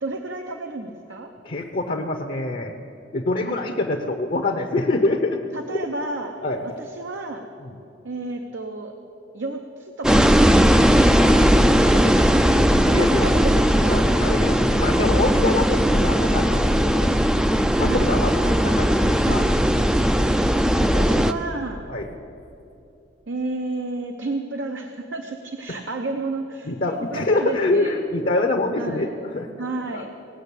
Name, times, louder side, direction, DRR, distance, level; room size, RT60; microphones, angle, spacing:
voice 1, 0.0-1.3 3.4-3.7 5.5-6.3 6.8-7.5 8.0-8.9 9.3-10.7 12.9-14.5 17.8-18.6 19.3-19.4 20.9-21.9 23.3-28.0 28.8-29.1 29.6-30.1, right 2 dB, 80° right, 4 dB, 0.8 m, -31 dB
voice 2, 1.4-2.7 3.1-5.4 6.4-6.6 7.6-7.7 11.1-13.2 13.9-17.1 17.8-18.3 18.6-19.5 21.9-22.1 25.7-25.8 26.7-29.5 29.9-30.0, left 2 dB, 50° left, 3 dB, 0.7 m, -25 dB
sound 1, 10.0-21.3, equal, 5° right, 0.3 m, -18 dB
18.0 x 6.3 x 8.2 m, 2.8 s
head